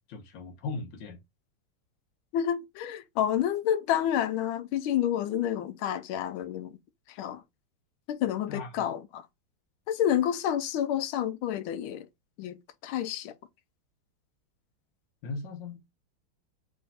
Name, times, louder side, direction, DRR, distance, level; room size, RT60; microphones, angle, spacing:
voice 1, 0.1-1.2 8.5-8.8 15.2-15.8, left 3 dB, 65° left, 1.7 m, -38 dB
voice 2, 2.3-6.8 7.1-7.4 8.1-9.3 9.9-12.1 12.4-12.5 12.8-13.3, left 10 dB, 85° left, 1.4 m, -29 dB
3.8 x 3.3 x 4.0 m
omnidirectional pair, 2.2 m